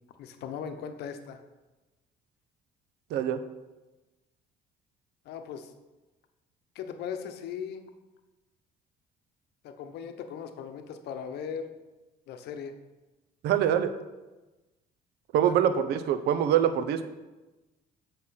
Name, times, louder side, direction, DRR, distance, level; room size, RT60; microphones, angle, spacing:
voice 1, 0.2-1.4 5.2-5.7 6.7-7.8 9.6-11.7 12.3-12.7 15.4-15.7, left 7 dB, 75° left, 7 dB, 0.9 m, -38 dB
voice 2, 13.4-13.9 15.3-17.0, right 9 dB, 80° right, 10 dB, 0.8 m, -24 dB
8.0 x 5.9 x 5.8 m, 1.1 s
cardioid pair, 110°, 17 cm